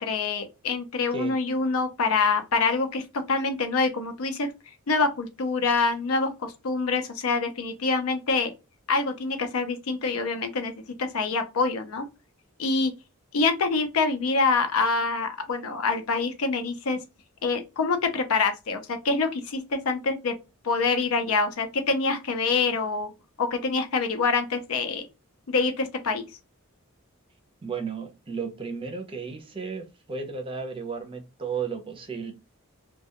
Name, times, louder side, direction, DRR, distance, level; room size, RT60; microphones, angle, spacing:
voice 1, 0.0-3.0 3.3-4.5 4.9-8.5 8.9-10.7 11.0-12.1 12.6-12.9 13.3-17.0 17.4-20.3 20.6-23.1 23.4-25.0 25.5-26.3, left 4 dB, 75° left, 0.5 m, -25 dB
voice 2, 27.6-32.3, right 5 dB, 25° right, 0.5 m, -34 dB
2.2 x 2.2 x 2.8 m
head